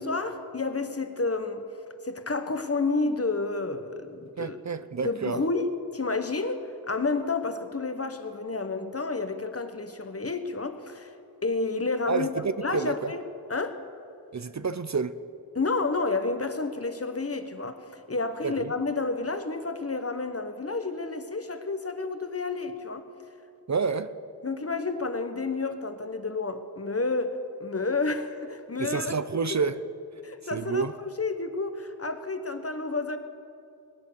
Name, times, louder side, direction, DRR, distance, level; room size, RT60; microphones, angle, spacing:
voice 1, 0.0-1.6 2.0-4.6 5.0-11.1 11.4-12.3 12.6-13.2 13.5-13.8 15.5-23.1 24.4-29.1 29.5-29.6 30.2-30.8 31.2-33.2, left 3 dB, 40° left, 1.1 m, -30 dB
voice 2, 4.4-5.4 12.1-13.1 14.3-15.1 18.4-18.7 23.7-24.1 28.8-29.8 30.5-30.9, right 5 dB, 45° right, 0.6 m, -29 dB
22.0 x 9.2 x 6.7 m
wide cardioid pair, 65°, 38 cm